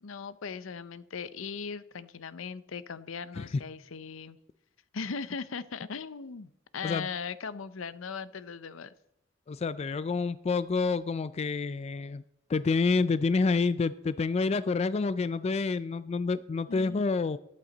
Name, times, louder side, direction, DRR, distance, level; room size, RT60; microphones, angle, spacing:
voice 1, 0.0-4.4 4.9-8.9 16.7-17.0, left 5 dB, 80° left, 15 dB, 0.6 m, -39 dB
voice 2, 9.5-12.2 12.5-17.4, left 4 dB, 30° left, 15 dB, 0.3 m, -28 dB
13.5 x 11.5 x 4.0 m, 0.84 s
head